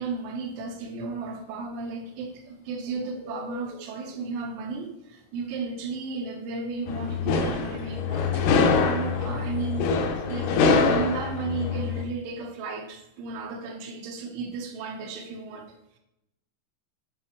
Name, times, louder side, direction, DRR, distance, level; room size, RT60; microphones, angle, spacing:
voice 1, 0.0-8.5 8.8-9.9 10.3-16.0, right 4 dB, 75° right, 3.5 m, -34 dB
Bird, 1.2-11.2, left 3 dB, 45° left, 1.9 m, -45 dB
sound 1, 6.9-12.0, left 4 dB, 85° left, 3.6 m, -24 dB
10.0 x 5.4 x 4.4 m
omnidirectional pair, 5.8 m